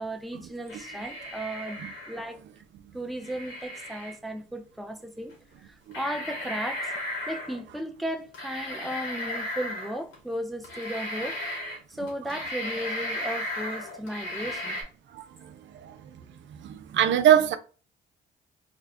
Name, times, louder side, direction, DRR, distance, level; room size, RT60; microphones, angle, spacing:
voice 1, 0.0-2.4 2.9-5.3 5.6-6.9 7.3-11.6 11.9-14.8, right 1 dB, ahead, 0.5 m, -35 dB
sound 1, 0.7-2.3 3.2-4.1 5.3-5.4 5.9-7.6 8.3-10.2 10.6-11.8 12.1-14.8, left 1 dB, 75° left, 1.8 m, -35 dB
voice 2, 15.1-16.2 16.5-17.6, right 10 dB, 70° right, 0.5 m, -24 dB
3.6 x 2.1 x 3.5 m
cardioid pair, 90°, 20 cm